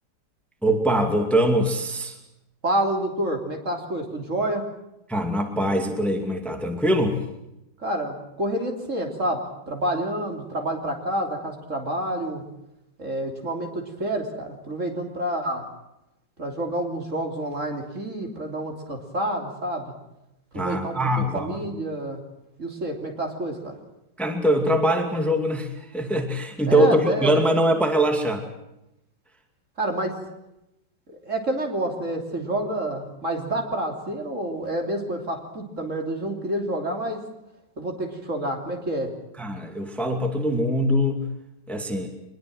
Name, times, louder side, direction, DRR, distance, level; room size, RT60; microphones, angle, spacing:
voice 1, 0.6-2.2 5.1-7.2 20.5-21.6 24.2-28.4 39.4-41.3 41.7-42.1, right 1 dB, ahead, 3 dB, 2.3 m, -23 dB
voice 2, 2.6-4.6 7.8-9.4 9.7-12.4 13.0-15.6 16.4-19.9 20.5-22.2 22.6-23.7 26.7-27.3 29.8-30.1 31.1-37.2 37.8-39.1, right 1 dB, 40° right, 2 dB, 3.5 m, -28 dB
25.0 x 21.0 x 7.8 m, 0.88 s
omnidirectional pair, 1.9 m